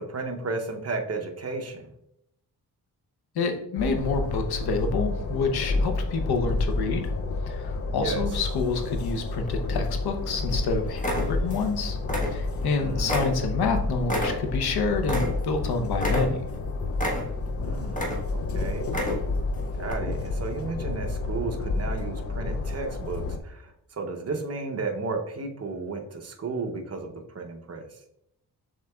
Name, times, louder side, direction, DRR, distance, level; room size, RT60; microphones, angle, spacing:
voice 1, 0.1-1.9 8.0-8.2 12.8-13.1 17.6-18.9 19.8-27.8, right 3 dB, 40° right, 4 dB, 0.7 m, -33 dB
voice 2, 3.3-7.1 7.4-12.0 12.2-16.4, left 4 dB, 90° left, 6 dB, 0.8 m, -28 dB
Train, 3.8-23.4, left 3 dB, 40° left, 0.4 m, -30 dB
sound 1, 9.5-10.1 10.5-10.7 11.0-11.7 12.0-12.7 13.1-15.6 16.0-16.6 17.0-17.5 17.9-18.5 18.8-19.4 19.9-20.0, left 1 dB, 20° left, 1.1 m, -30 dB
6.4 x 3.6 x 2.3 m, 0.76 s
cardioid pair, 95°, 37 cm